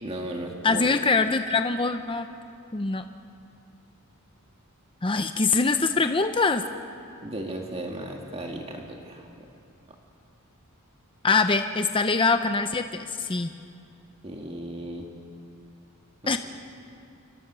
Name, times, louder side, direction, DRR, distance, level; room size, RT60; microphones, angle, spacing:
voice 1, 0.0-0.9 7.2-9.5 14.2-15.1 16.2-16.4, right 1 dB, 30° right, 1 dB, 1.8 m, -35 dB
voice 2, 0.6-2.3 2.7-3.1 5.0-6.6 11.2-13.5 16.3-16.4, left 4 dB, 25° left, 8 dB, 0.6 m, -23 dB
28.5 x 24.0 x 6.2 m, 2.5 s
head